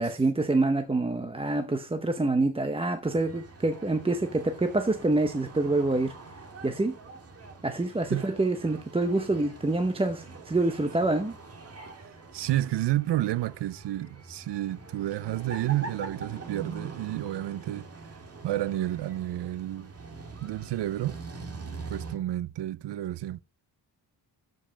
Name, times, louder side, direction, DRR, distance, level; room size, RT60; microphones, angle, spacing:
voice 1, 0.0-6.1 6.6-7.0 7.6-11.4, right 2 dB, 10° right, 0.7 m, -26 dB
sound 1, 3.0-22.2, right 3 dB, 30° right, 1.7 m, -44 dB
voice 2, 12.3-17.9 18.4-19.9 20.4-21.2 21.9-23.4, right 14 dB, 65° right, 0.5 m, -30 dB
12.5 x 5.4 x 5.1 m
wide cardioid pair, 155°, 45 cm